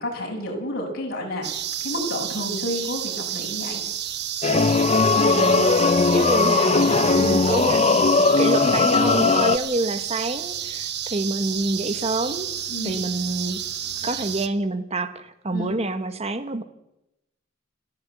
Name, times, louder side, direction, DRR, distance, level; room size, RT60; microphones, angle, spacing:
voice 1, 0.0-1.5 1.8-3.8 12.7-13.0 15.5-15.7, left 1 dB, 50° left, -1 dB, 7.0 m, -30 dB
sound 1, 1.4-14.5, right 11 dB, 55° right, 1.2 m, -31 dB
sound 2, 4.4-9.6, left 4 dB, 35° left, 0.6 m, -19 dB
voice 2, 5.2-5.8 6.1-12.5 12.8-13.6 14.0-16.6, right 2 dB, 30° right, 10 dB, 1.5 m, -27 dB
29.5 x 11.5 x 8.3 m, 0.91 s
head